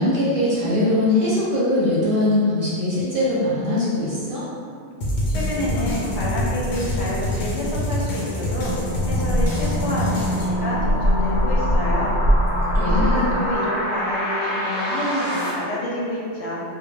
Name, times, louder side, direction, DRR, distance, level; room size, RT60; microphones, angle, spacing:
voice 1, 0.0-4.4 12.7-13.3, left 1 dB, 65° right, -8 dB, 0.7 m, -21 dB
sound 1, 5.0-10.5, left 1 dB, 55° left, 0.6 m, -26 dB
voice 2, 5.3-8.7 9.0-12.1 12.8-16.6, left 1 dB, 85° left, -5 dB, 0.9 m, -28 dB
sound 2, 7.2-15.5, equal, 10° right, 0.8 m, -29 dB
sound 3, 8.6-13.6, equal, 90° right, 0.9 m, -22 dB
2.3 x 2.1 x 3.1 m, 2.2 s
omnidirectional pair, 1.1 m